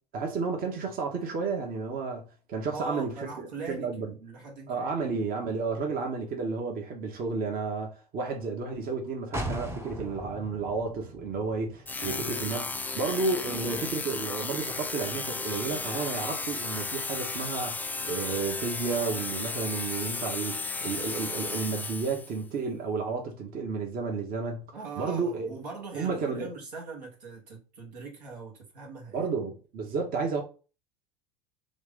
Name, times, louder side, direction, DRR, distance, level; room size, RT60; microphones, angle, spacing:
voice 1, 0.1-4.1 4.7-24.7 25.0-25.5 25.9-26.5 29.1-30.4, right 4 dB, 45° right, 1.0 m, -32 dB
voice 2, 2.7-3.9 4.2-5.1 12.0-12.4 24.7-29.3, right 4 dB, 85° right, 1.3 m, -41 dB
sound 1, 9.3-13.1 13.4-13.5, right 1 dB, 10° right, 0.8 m, -38 dB
sound 2, 11.9-22.4, left 3 dB, 10° left, 0.3 m, -34 dB
3.1 x 2.5 x 3.5 m
hypercardioid pair, 80°, 20 cm